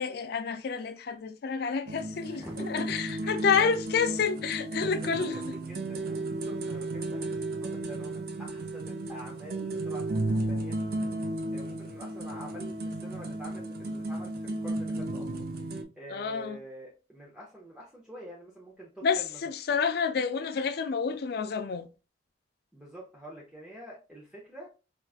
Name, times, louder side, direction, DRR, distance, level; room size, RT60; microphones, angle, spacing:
voice 1, 0.0-5.4 16.1-16.6 19.0-21.9, left 6 dB, 55° left, 0.3 m, -29 dB
sound 1, 1.9-15.8, right 2 dB, 50° right, 0.5 m, -34 dB
voice 2, 2.3-2.9 3.2-3.7 4.3-4.4 4.7-10.8 11.2-15.3 16.0-19.4 22.7-24.7, right 1 dB, 5° right, 0.6 m, -46 dB
4.5 x 2.4 x 2.3 m
head